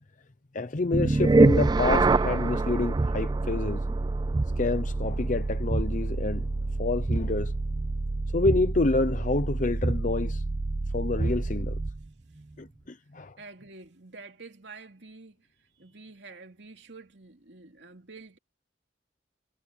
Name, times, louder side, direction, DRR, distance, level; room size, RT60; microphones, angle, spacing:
voice 1, 0.5-3.8 4.6-6.5 6.8-7.5 8.3-10.4 10.9-11.8 12.6-13.4, left 3 dB, 45° left, 0.7 m, -28 dB
sound 1, 0.9-12.1, right 3 dB, 20° right, 0.3 m, -26 dB
voice 2, 13.4-18.4, right 3 dB, 70° right, 3.0 m, -48 dB
head